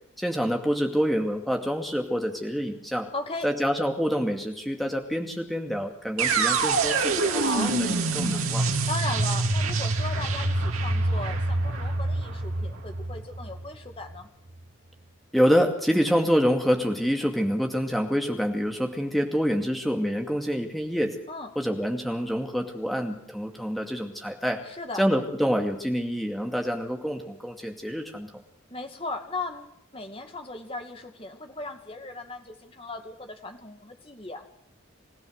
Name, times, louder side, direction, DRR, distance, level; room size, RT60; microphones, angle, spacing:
voice 1, 0.2-3.1 3.4-8.7 15.3-21.2 21.6-24.6 25.0-28.3, equal, ahead, 3 dB, 2.3 m, -26 dB
voice 2, 3.1-3.5 7.3-7.7 8.9-14.3 21.3-21.5 24.7-25.0 28.7-34.4, left 2 dB, 25° left, 5 dB, 2.3 m, -37 dB
sound 1, 6.2-14.1, right 3 dB, 85° right, 2.9 m, -26 dB
29.0 x 15.5 x 6.6 m, 0.70 s
head